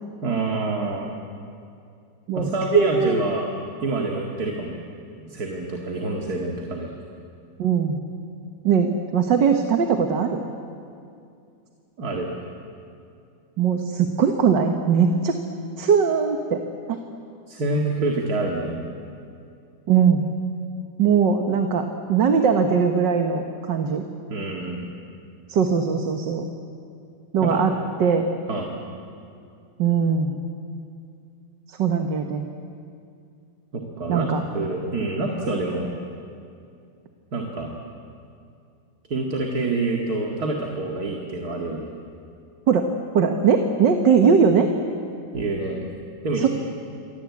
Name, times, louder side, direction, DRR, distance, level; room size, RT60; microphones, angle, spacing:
voice 1, 0.2-1.2 2.3-3.5 3.8-4.8 5.2-6.9 12.0-12.3 17.5-18.8 24.3-24.8 27.4-27.6 28.5-28.7 33.7-34.3 34.5-35.9 37.3-37.7 39.1-41.8 45.3-45.8 46.2-46.5, right 2 dB, 55° right, 1 dB, 2.6 m, -26 dB
voice 2, 2.3-3.2 7.6-8.0 8.6-10.4 13.6-15.4 15.8-16.6 16.9-17.0 19.9-20.2 21.0-24.0 25.5-26.4 27.3-27.7 28.0-28.3 29.8-30.4 31.7-32.5 34.1-34.4 42.7-42.9 43.1-44.7 46.4-46.5, right 6 dB, 75° right, 5 dB, 2.0 m, -20 dB
29.5 x 24.0 x 8.5 m, 2.5 s
omnidirectional pair, 2.0 m